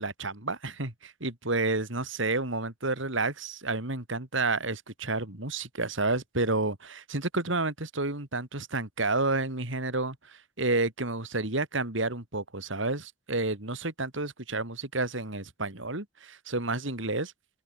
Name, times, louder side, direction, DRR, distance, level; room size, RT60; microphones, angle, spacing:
voice 1, 0.0-17.3, right 2 dB, 65° right, 3.4 m, -30 dB
open air
head